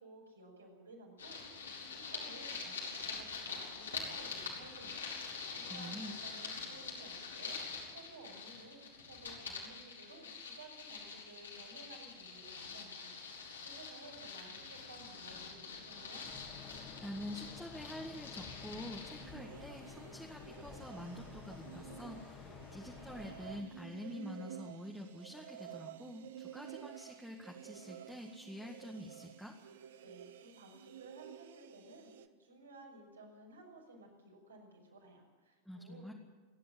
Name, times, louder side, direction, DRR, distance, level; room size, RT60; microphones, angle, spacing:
voice 1, 0.0-7.6 7.9-16.3 30.0-36.1, right 2 dB, 75° right, -1 dB, 6.5 m, -56 dB
sound 1, 1.2-19.3, left 5 dB, 70° left, 4.2 m, -45 dB
voice 2, 5.7-6.2 17.0-29.6 35.7-36.1, equal, ahead, 0 dB, 2.0 m, -47 dB
sound 2, 16.2-23.6, left 5 dB, 30° left, 2.8 m, -52 dB
sound 3, 19.2-32.3, right 10 dB, 55° right, 1.1 m, -52 dB
28.5 x 11.0 x 9.0 m, 1.3 s
figure-of-eight pair, 90°, 0 cm